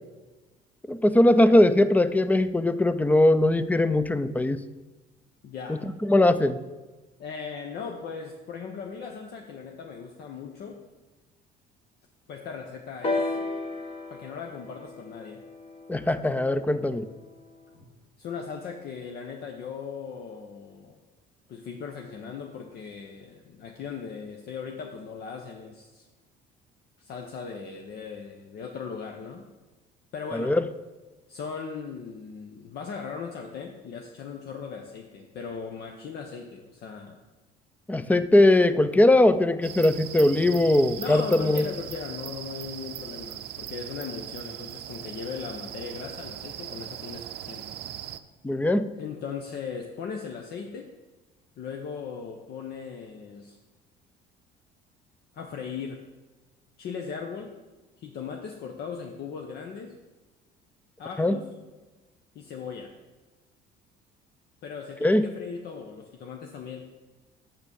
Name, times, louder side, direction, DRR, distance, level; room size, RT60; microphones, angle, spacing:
voice 1, 0.9-4.6 5.7-6.6 15.9-17.1 30.3-30.6 37.9-41.6 48.4-48.9 61.2-61.4 65.0-65.3, left 1 dB, 10° left, 13 dB, 0.4 m, -20 dB
voice 2, 5.4-5.8 7.2-10.8 12.3-13.4 14.1-15.4 18.2-21.0 21.5-26.1 27.0-29.4 30.1-30.6 31.3-37.2 41.0-47.8 48.9-50.9 51.6-53.6 55.3-56.0 56.8-57.6 58.0-59.9 61.0-61.5 62.3-62.9 64.6-66.8, left 6 dB, 60° left, 3 dB, 0.9 m, -38 dB
sound 1, 13.0-16.9 17.8-17.9, left 2 dB, 30° left, 1.3 m, -33 dB
sound 2, 39.6-48.2, right 12 dB, 60° right, 0.6 m, -39 dB
6.9 x 5.9 x 6.9 m, 1.2 s
cardioid pair, 110°, 19 cm